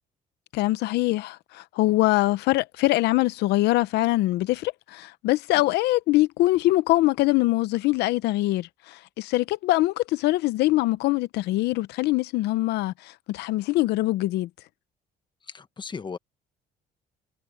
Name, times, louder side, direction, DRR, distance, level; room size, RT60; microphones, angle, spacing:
voice 1, 0.5-14.5, left 18 dB, 85° left, 0.8 m, -23 dB
voice 2, 15.5-16.2, left 5 dB, 25° left, 1.2 m, -37 dB
cardioid pair, 110°, 17 cm